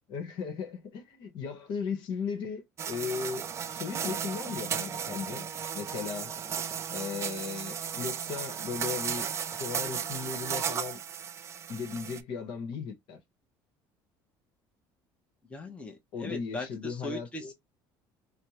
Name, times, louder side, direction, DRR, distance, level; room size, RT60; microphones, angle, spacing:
voice 1, 0.1-5.5 5.7-6.3 6.9-9.3 9.6-11.0 11.7-13.2 16.1-17.5, left 6 dB, 65° left, 1.1 m, -36 dB
sound 1, 2.8-12.2, right 7 dB, 30° right, 0.3 m, -35 dB
voice 2, 15.5-17.5, left 2 dB, 15° left, 0.8 m, -40 dB
3.5 x 2.1 x 2.9 m
cardioid pair, 120°, 9 cm